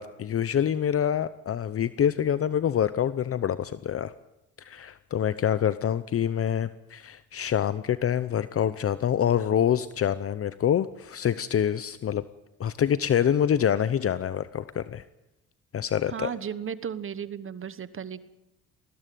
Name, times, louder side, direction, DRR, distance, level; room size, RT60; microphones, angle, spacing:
voice 1, 0.0-4.1 4.6-12.2 12.6-15.0 15.7-16.3, left 9 dB, 50° left, 14 dB, 0.8 m, -26 dB
voice 2, 16.1-18.3, right 8 dB, 45° right, 15 dB, 1.2 m, -35 dB
20.5 x 16.0 x 9.3 m, 0.94 s
cardioid pair, 90°, 30 cm